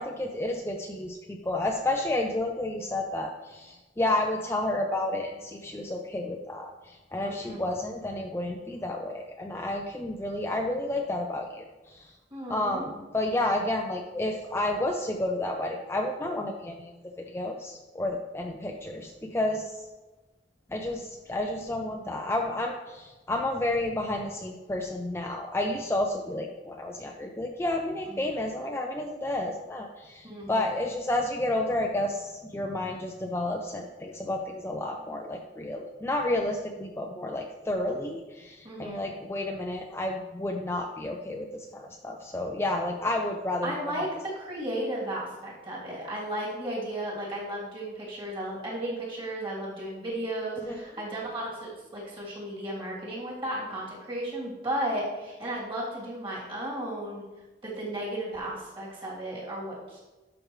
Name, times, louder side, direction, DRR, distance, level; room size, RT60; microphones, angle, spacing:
voice 1, 0.0-12.1 12.5-19.8 20.7-43.7 44.0-44.1 50.7-50.8, left 1 dB, 15° left, 2 dB, 0.5 m, -31 dB
voice 2, 7.2-7.7 12.3-12.9 28.1-28.2 30.2-30.6 38.6-39.0 43.6-57.2 57.6-60.0, right 1 dB, 30° right, -6 dB, 3.0 m, -34 dB
11.0 x 6.0 x 3.2 m, 1.2 s
head